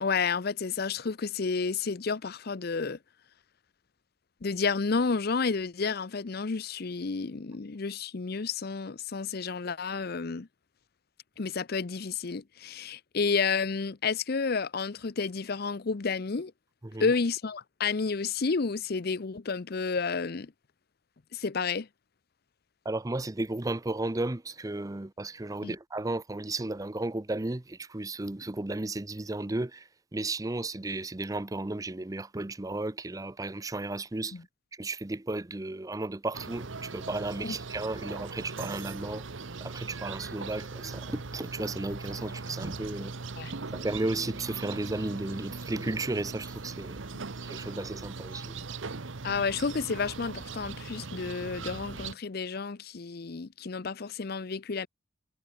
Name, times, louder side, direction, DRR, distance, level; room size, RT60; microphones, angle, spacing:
voice 1, 0.0-3.0 4.4-10.5 11.4-16.5 17.0-20.5 21.3-21.9 25.6-25.8 34.3-34.4 37.4-37.5 43.4-43.5 49.2-54.9, left 5 dB, 50° left, 0.6 m, -31 dB
voice 2, 22.8-34.4 34.7-39.3 39.6-43.1 43.7-47.0 47.4-48.6, right 2 dB, 15° right, 0.6 m, -34 dB
sound 1, 36.3-52.1, right 4 dB, 75° right, 1.1 m, -40 dB
head